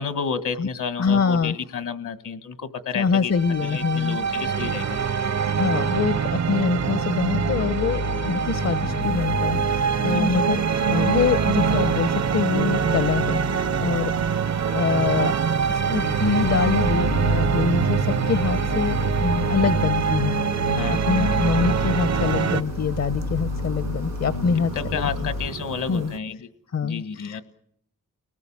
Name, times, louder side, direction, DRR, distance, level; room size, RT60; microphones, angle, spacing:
voice 1, 0.0-3.3 3.6-5.0 10.0-10.4 19.6-19.9 20.8-21.4 24.7-26.5 26.8-27.4, left 6 dB, 75° left, 13 dB, 1.6 m, -31 dB
voice 2, 1.0-1.5 2.9-4.2 5.5-14.1 14.6-15.3 15.7-20.3 21.1-25.3 25.9-26.1 26.7-27.4, left 5 dB, 55° left, 14 dB, 0.9 m, -25 dB
sound 1, 3.3-22.6, right 6 dB, 60° right, 0.9 m, -24 dB
sound 2, 6.7-25.5, left 3 dB, 90° left, 2.0 m, -31 dB
sound 3, 9.0-26.2, right 8 dB, 80° right, 2.1 m, -38 dB
30.0 x 19.5 x 7.2 m, 0.72 s
cardioid pair, 60°, 31 cm